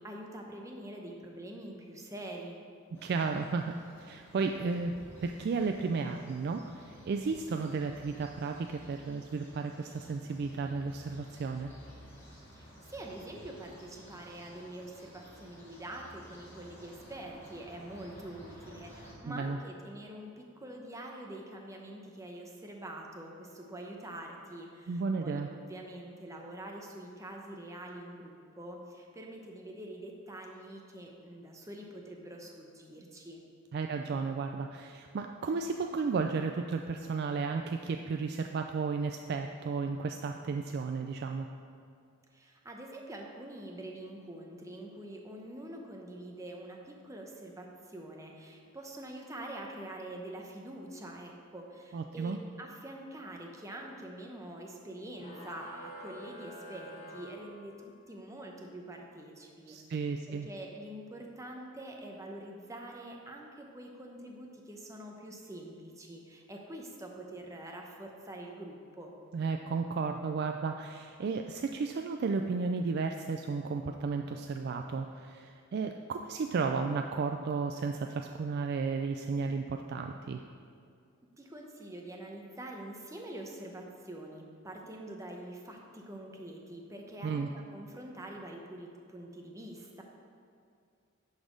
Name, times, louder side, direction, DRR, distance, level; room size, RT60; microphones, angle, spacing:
voice 1, 0.0-2.6 12.6-33.4 42.3-69.1 81.4-90.0, right 1 dB, 15° right, 1 dB, 0.8 m, -45 dB
sound 1, 2.9-19.1, equal, 10° left, 2.0 m, -54 dB
voice 2, 2.9-5.0 5.2-11.7 19.3-19.6 24.9-25.5 33.7-41.5 51.9-52.4 59.7-60.5 69.3-80.4 87.2-87.5, right 4 dB, 55° right, 4 dB, 0.3 m, -33 dB
sound 2, 55.1-58.0, equal, 40° left, 1.6 m, -48 dB
11.0 x 4.1 x 5.2 m, 2.4 s
head